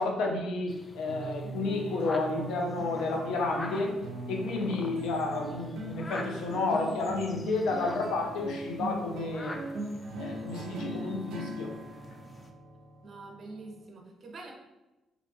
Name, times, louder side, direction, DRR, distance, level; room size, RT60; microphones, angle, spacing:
voice 1, 0.0-3.9 4.3-9.7 10.2-11.8, left 3 dB, 85° left, 1 dB, 0.5 m, -31 dB
sound 1, 0.7-12.5, left 2 dB, 25° left, 0.3 m, -46 dB
sound 2, 1.1-13.8, right 2 dB, 90° right, 0.4 m, -40 dB
voice 2, 13.0-14.5, right 3 dB, 45° right, 0 dB, 0.6 m, -45 dB
2.5 x 2.3 x 2.6 m, 1.0 s
cardioid pair, 90°, 0 cm